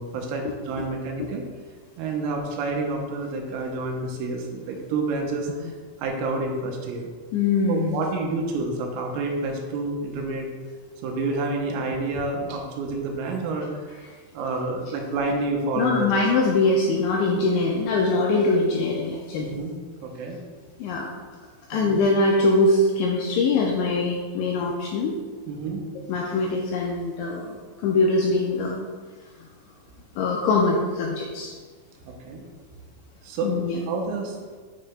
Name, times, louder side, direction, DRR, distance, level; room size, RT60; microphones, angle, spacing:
voice 1, 0.0-1.5 2.0-5.7 6.0-7.1 7.7-10.5 11.0-14.0 14.4-16.1 19.4-19.7 20.0-20.4 21.7-22.0 25.5-25.9 27.7-27.8 32.1-32.4 33.2-33.6 33.9-34.6, right 3 dB, 85° right, 1 dB, 3.3 m, -29 dB
voice 2, 7.3-8.0 15.8-19.5 20.8-21.1 21.7-25.1 26.1-27.6 27.8-28.7 29.4-29.5 30.2-31.5 33.4-33.8, left 3 dB, 85° left, -1 dB, 2.6 m, -22 dB
9.4 x 6.3 x 2.2 m, 1.5 s
omnidirectional pair, 5.8 m